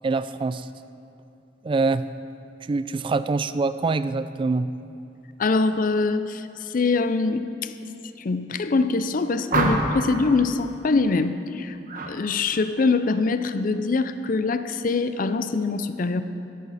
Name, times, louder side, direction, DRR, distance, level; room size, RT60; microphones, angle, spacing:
voice 1, 0.0-0.7 1.6-2.1 2.7-4.7, right 3 dB, 30° right, 14 dB, 0.3 m, -24 dB
voice 2, 5.4-7.7 8.2-11.8 12.0-16.2, left 3 dB, 50° left, 11 dB, 0.5 m, -24 dB
sound 1, 9.5-10.1 11.9-12.1 12.5-12.9, right 2 dB, 50° right, 1.2 m, -25 dB
13.0 x 11.5 x 4.1 m, 2.7 s
head